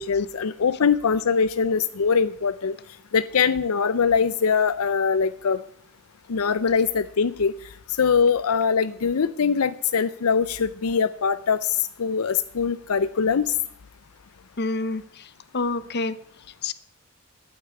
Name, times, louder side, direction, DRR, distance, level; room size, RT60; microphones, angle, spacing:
voice 1, 0.0-2.8 3.1-5.6 6.3-7.5 7.9-13.5, left 6 dB, 75° left, 13 dB, 0.5 m, -22 dB
voice 2, 14.6-16.2 16.6-16.7, left 3 dB, 50° left, 14 dB, 0.9 m, -28 dB
11.5 x 9.0 x 8.3 m, 0.67 s
head